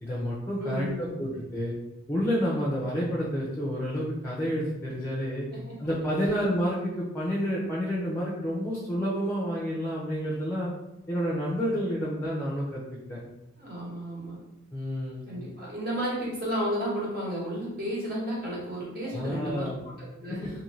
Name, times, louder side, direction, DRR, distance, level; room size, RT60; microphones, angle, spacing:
voice 1, 0.0-1.8 2.1-5.5 5.8-10.7 11.1-12.8 13.1-13.2 14.7-15.2 19.0-19.8 20.3-20.5, equal, 10° left, -6 dB, 0.4 m, -29 dB
voice 2, 0.6-1.2 5.7-5.8 13.6-14.4 15.2-19.7 20.0-20.4, equal, 50° right, -6 dB, 1.2 m, -32 dB
2.6 x 2.5 x 3.1 m, 0.93 s
head